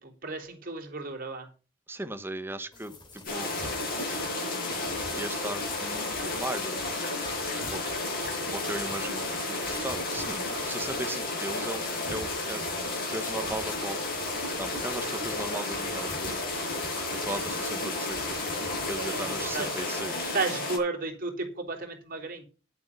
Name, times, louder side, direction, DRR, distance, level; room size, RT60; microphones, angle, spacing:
voice 1, 0.0-1.5 8.2-8.6 18.9-19.8 20.3-22.4, right 3 dB, 45° right, 1 dB, 3.8 m, -34 dB
voice 2, 1.9-3.5 5.1-6.8 7.7-7.8 8.5-12.6 13.1-14.0 14.6-16.7 17.1-18.4 18.9-20.3, right 1 dB, 10° right, 10 dB, 1.1 m, -37 dB
sound 1, 2.7-20.4, left 2 dB, 25° left, 3.3 m, -46 dB
sound 2, 3.3-20.8, left 2 dB, 45° left, 7.6 m, -32 dB
10.5 x 8.3 x 6.8 m, 0.35 s
head